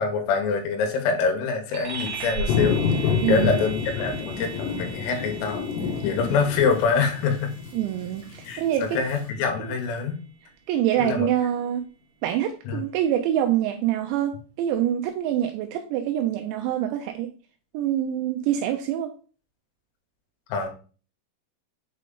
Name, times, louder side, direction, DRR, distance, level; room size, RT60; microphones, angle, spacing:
voice 1, 0.0-5.7 6.0-7.5 8.5-10.2 11.0-11.3 12.7-12.8 20.5-20.7, left 5 dB, 90° left, 4 dB, 3.7 m, -25 dB
sound 1, 1.7-11.6, right 4 dB, 55° right, 2.2 m, -39 dB
sound 2, 2.5-9.1, left 5 dB, 70° left, 2.6 m, -28 dB
voice 2, 3.2-3.6 7.7-9.0 10.7-11.8 12.2-17.3 17.7-19.1, right 11 dB, 85° right, 5 dB, 2.6 m, -25 dB
7.5 x 3.7 x 3.6 m, 0.38 s
omnidirectional pair, 5.7 m